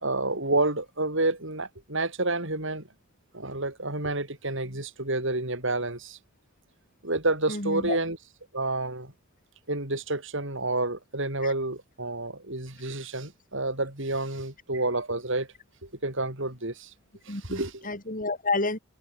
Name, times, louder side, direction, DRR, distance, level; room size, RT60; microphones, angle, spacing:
voice 1, 0.0-2.9 3.3-6.2 7.0-8.2 8.5-9.1 9.7-15.5 15.8-16.9 17.3-17.9, right 2 dB, 65° right, 7.5 m, -29 dB
voice 2, 7.5-8.0 11.4-11.5 17.3-18.8, left 3 dB, 40° left, 5.2 m, -30 dB
head